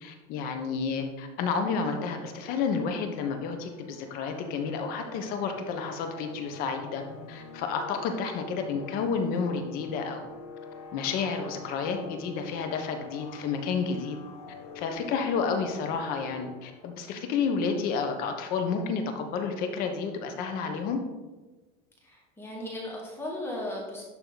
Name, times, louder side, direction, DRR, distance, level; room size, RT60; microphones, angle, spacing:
voice 1, 0.0-7.0 7.3-10.2 10.9-14.2 14.7-21.0, left 5 dB, 55° left, 5 dB, 1.1 m, -30 dB
sound 1, 3.0-17.1, left 4 dB, 90° left, 1.2 m, -46 dB
voice 2, 22.0-24.0, left 1 dB, 10° left, -3 dB, 1.6 m, -36 dB
11.5 x 3.9 x 4.0 m, 1.2 s
supercardioid pair, 145°, 18 cm